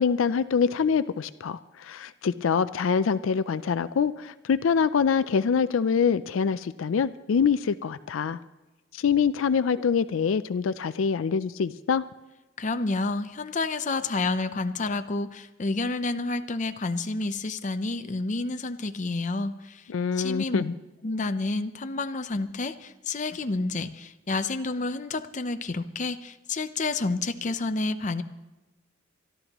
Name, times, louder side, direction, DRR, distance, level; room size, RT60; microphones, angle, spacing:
voice 1, 0.0-8.4 8.9-12.0 19.9-20.7, left 6 dB, 80° left, 14 dB, 0.4 m, -25 dB
voice 2, 12.6-19.8 20.2-20.6 21.0-28.2, left 3 dB, 40° left, 9 dB, 0.6 m, -29 dB
24.5 x 12.5 x 3.0 m, 1.1 s
head